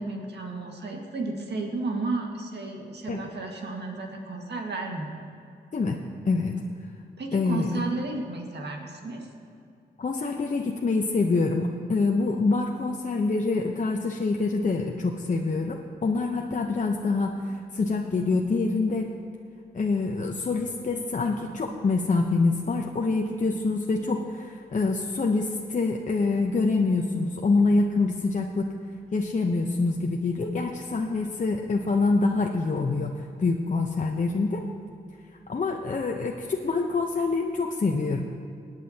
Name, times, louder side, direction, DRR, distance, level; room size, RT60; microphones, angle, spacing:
voice 1, 0.0-5.2 7.2-9.2, right 3 dB, 65° right, 1 dB, 1.8 m, -33 dB
voice 2, 7.3-7.7 10.0-19.1 19.7-28.7 29.1-34.6 35.5-38.2, left 3 dB, 40° left, 1 dB, 0.8 m, -26 dB
18.5 x 9.1 x 2.9 m, 2.5 s
supercardioid pair, 45°, 19 cm